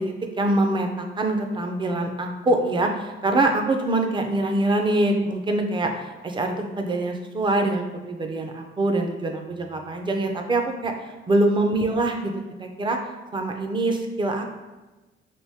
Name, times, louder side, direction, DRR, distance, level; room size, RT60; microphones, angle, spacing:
voice 1, 0.0-12.3 12.6-13.0 13.3-14.4, right 2 dB, 25° right, 4 dB, 0.5 m, -24 dB
3.5 x 2.5 x 2.8 m, 1.2 s
cardioid pair, 90°, 20 cm